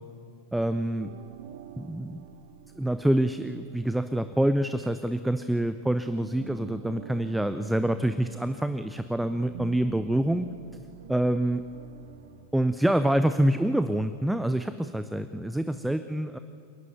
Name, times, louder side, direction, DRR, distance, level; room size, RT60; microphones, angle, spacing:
voice 1, 0.5-1.1 1.8-2.2 2.8-10.5 11.1-11.6 12.5-16.4, right 1 dB, 5° right, 11 dB, 0.6 m, -26 dB
sound 1, 0.6-5.9 6.2-12.5, right 7 dB, 60° right, 1.1 m, -47 dB
26.5 x 11.0 x 9.2 m, 2.6 s
figure-of-eight pair, 90°, 0 cm